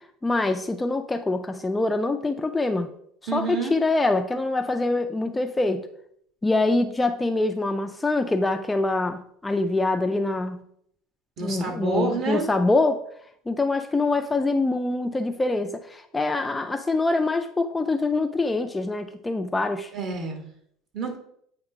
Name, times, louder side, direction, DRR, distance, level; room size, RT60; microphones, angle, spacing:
voice 1, 0.2-2.9 3.3-5.9 6.4-10.6 11.4-13.0 13.5-19.9, left 2 dB, 10° left, 6 dB, 0.4 m, -24 dB
voice 2, 3.3-3.8 11.4-12.5 19.9-20.4 20.9-21.2, right 4 dB, 45° right, 3 dB, 1.6 m, -28 dB
8.3 x 2.9 x 5.0 m, 0.69 s
supercardioid pair, 130°, 0 cm